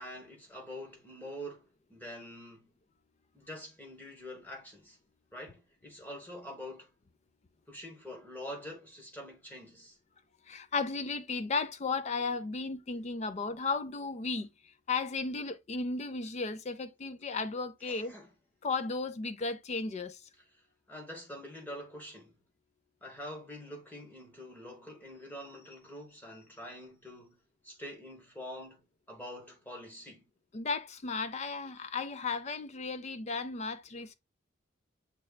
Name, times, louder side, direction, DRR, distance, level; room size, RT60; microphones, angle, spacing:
voice 1, 0.0-2.7 3.3-5.0 5.3-6.9 7.7-10.0 17.8-18.3 20.9-22.4 23.0-28.8 29.1-30.2, equal, 10° left, 1.2 m, -45 dB
voice 2, 10.5-18.1 18.6-20.3 30.5-34.2, left 4 dB, 35° left, 0.4 m, -35 dB
6.7 x 3.2 x 2.2 m
head